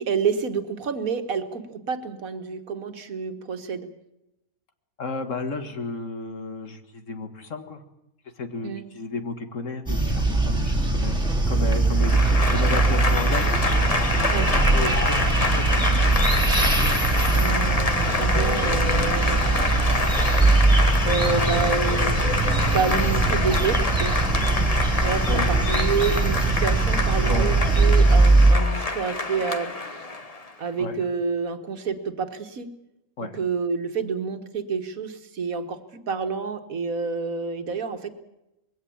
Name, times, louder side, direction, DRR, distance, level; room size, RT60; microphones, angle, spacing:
voice 1, 0.0-3.9 8.6-8.9 14.3-14.5 14.7-15.0 17.3-19.5 21.0-22.2 22.7-24.1 25.0-30.0 30.6-32.7 33.3-35.8 36.1-38.2, right 5 dB, 75° right, 8 dB, 1.9 m, -28 dB
voice 2, 5.0-7.8 8.4-11.2 11.5-13.5 14.7-15.3 15.7-16.1 22.6-22.8 25.3-25.5 27.3-27.5 30.8-31.0 33.2-33.4, left 3 dB, 60° left, 8 dB, 2.0 m, -32 dB
sound 1, 9.9-28.5, right 3 dB, 5° right, 3.4 m, -21 dB
Applause / Crowd, 11.9-30.5, left 3 dB, 25° left, 1.4 m, -27 dB
21.5 x 16.5 x 8.6 m, 0.89 s
omnidirectional pair, 1.5 m